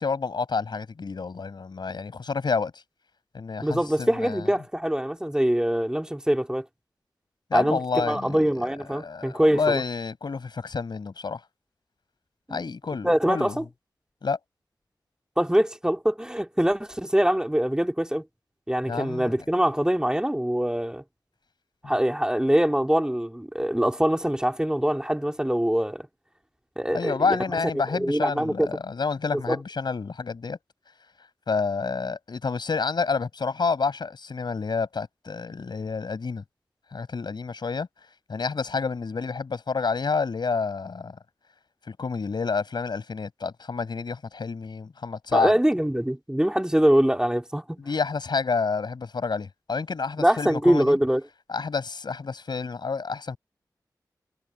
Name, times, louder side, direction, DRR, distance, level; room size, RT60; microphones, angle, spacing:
voice 1, 0.0-2.8 3.3-4.5 7.5-8.4 8.9-11.4 12.5-13.6 14.2-14.4 18.9-19.3 21.8-21.9 26.9-30.6 31.5-36.4 36.9-37.9 38.3-41.2 41.9-45.5 47.8-51.0 51.5-53.4, left 4 dB, 75° left, 7.3 m, -29 dB
voice 2, 3.6-6.6 7.5-9.8 12.5-12.6 13.0-13.6 15.4-18.2 18.7-21.0 21.8-26.1 26.8-27.4 27.9-28.7 29.3-29.6 45.3-47.8 50.2-51.2, equal, 10° right, 3.5 m, -23 dB
cardioid pair, 55°, 8 cm